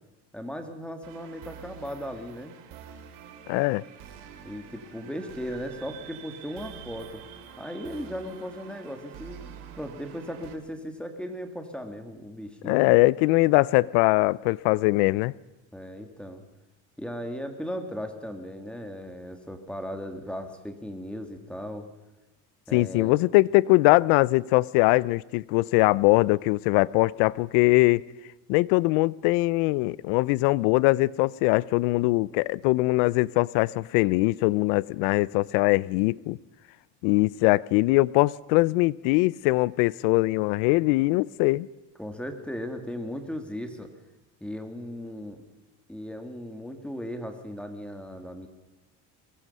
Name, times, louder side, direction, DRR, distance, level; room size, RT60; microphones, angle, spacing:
voice 1, 0.3-2.5 4.4-7.2 7.6-9.4 9.7-12.8 15.7-16.4 17.0-21.8 22.7-23.1 42.0-43.9 44.4-45.4 45.9-48.5, equal, 5° left, 6 dB, 2.2 m, -37 dB
sound 1, 1.0-10.6, right 8 dB, 85° right, 3.0 m, -46 dB
voice 2, 3.5-3.8 12.6-15.3 22.7-28.0 28.5-36.4 37.0-41.7, left 21 dB, 90° left, 23 dB, 0.7 m, -22 dB
23.0 x 20.0 x 5.6 m, 1.0 s
cardioid pair, 135°, 41 cm